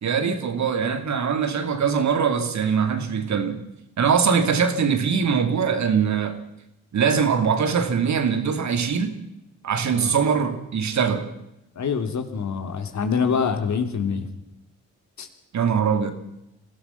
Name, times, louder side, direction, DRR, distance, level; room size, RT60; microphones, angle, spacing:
voice 1, 0.0-3.6 4.0-6.4 6.9-9.2 9.6-11.3 15.5-16.1, right 6 dB, 45° right, 2.6 m, -22 dB
voice 2, 11.7-14.3 15.2-15.3, left 6 dB, 45° left, 3.1 m, -25 dB
26.5 x 17.5 x 5.8 m
figure-of-eight pair, 40°, 39 cm